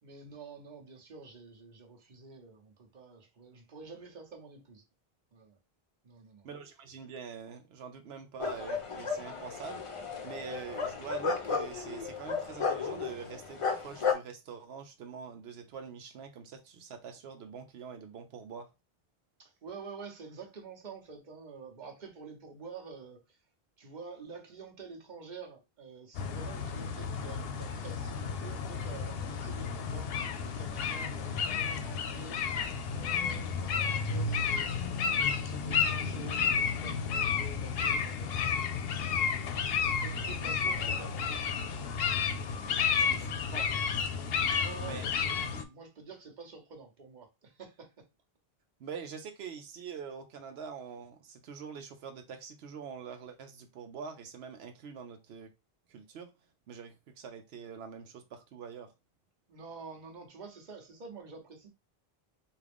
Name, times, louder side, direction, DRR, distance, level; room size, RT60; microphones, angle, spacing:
voice 1, 0.0-4.8 5.3-5.6 6.0-6.5 19.4-23.4 23.8-34.8 35.2-43.1 44.6-48.0 59.5-61.7, right 4 dB, 50° right, 1.0 m, -49 dB
voice 2, 6.4-9.8 10.2-18.7 42.9-43.7 44.8-45.0 48.8-55.5 55.9-56.3 56.7-58.9, right 6 dB, 85° right, 0.9 m, -44 dB
sound 1, 8.4-14.1, left 5 dB, 40° left, 0.6 m, -34 dB
sound 2, 26.1-45.6, left 6 dB, 75° left, 0.8 m, -32 dB
3.6 x 2.5 x 3.4 m
omnidirectional pair, 1.0 m